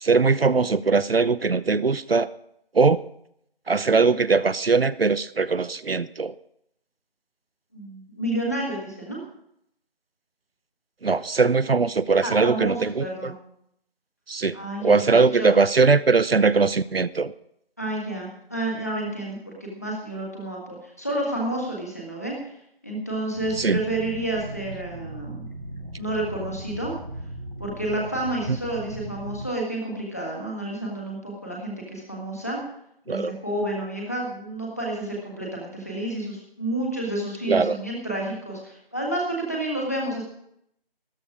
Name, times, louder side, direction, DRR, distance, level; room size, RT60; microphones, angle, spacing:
voice 1, 0.0-2.3 2.7-3.0 3.7-6.3 11.0-13.3 14.3-14.6 14.8-17.3 23.6-23.8 28.5-28.6 33.1-33.3 37.5-37.8, right 4 dB, 75° right, 16 dB, 0.7 m, -20 dB
voice 2, 7.7-9.2 12.2-13.3 14.5-14.9 15.3-15.6 17.8-22.3 22.8-25.5 26.0-26.9 27.6-32.6 33.1-40.2, right 1 dB, 15° left, -3 dB, 1.7 m, -30 dB
sound 1, 23.3-29.5, right 1 dB, 50° right, 1.5 m, -38 dB
13.5 x 12.0 x 5.0 m, 0.74 s
figure-of-eight pair, 180°, 30 cm